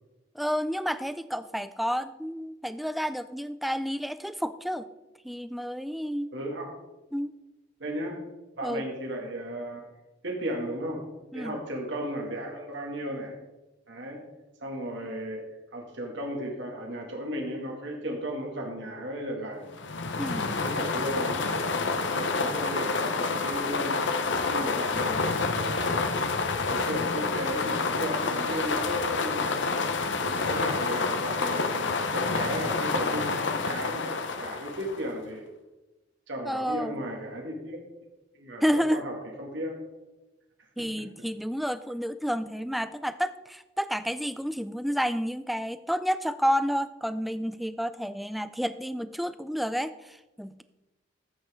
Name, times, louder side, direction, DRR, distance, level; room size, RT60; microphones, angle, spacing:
voice 1, 0.4-4.9 5.2-6.3 7.1-7.3 8.6-8.8 11.3-11.6 20.2-20.5 36.5-37.0 38.6-39.0 40.8-50.6, equal, ahead, 12 dB, 0.3 m, -30 dB
voice 2, 6.3-6.7 7.8-8.2 8.6-9.8 10.2-11.1 11.3-13.4 13.9-14.2 14.6-15.4 15.7-19.7 20.6-24.0 24.4-26.0 26.4-29.5 30.2-35.5 36.3-37.8 38.3-39.8 40.8-40.9, equal, 70° right, 0 dB, 2.2 m, -35 dB
sound 1, 19.7-35.2, left 4 dB, 70° left, 0.9 m, -28 dB
13.5 x 8.5 x 3.7 m, 1.0 s
head